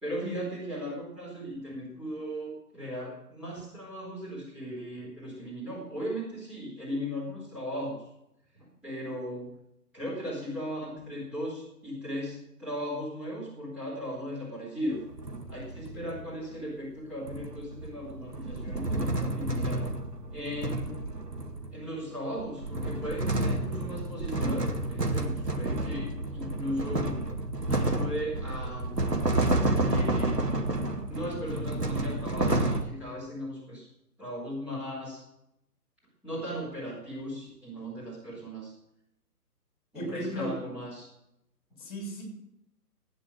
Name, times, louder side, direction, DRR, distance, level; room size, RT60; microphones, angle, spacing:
voice 1, 0.0-8.0 8.5-9.5 9.9-15.0 15.5-19.8 20.3-20.9 21.7-27.2 27.7-29.1 29.7-30.5 31.1-33.9 34.2-35.2 36.2-38.7 39.9-41.1, equal, 5° right, -9 dB, 4.3 m, -37 dB
sound 1, 14.9-16.3 17.3-21.9 22.4-32.8, right 2 dB, 90° right, 2.1 m, -30 dB
voice 2, 39.9-40.6 41.8-42.2, equal, 35° left, 0 dB, 6.7 m, -35 dB
16.0 x 9.5 x 6.4 m, 0.82 s
figure-of-eight pair, 135°, 47 cm